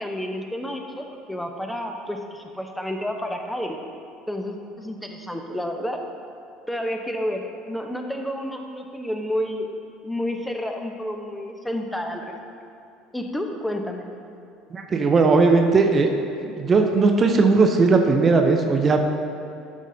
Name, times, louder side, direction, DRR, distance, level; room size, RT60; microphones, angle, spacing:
voice 1, 0.0-3.8 4.3-6.1 6.7-9.7 10.0-12.4 13.1-14.1, equal, 5° left, 3 dB, 0.8 m, -30 dB
voice 2, 14.7-16.1 16.4-19.0, right 4 dB, 30° right, 4 dB, 0.6 m, -18 dB
12.0 x 6.1 x 2.8 m, 2.6 s
figure-of-eight pair, 65°, 0 cm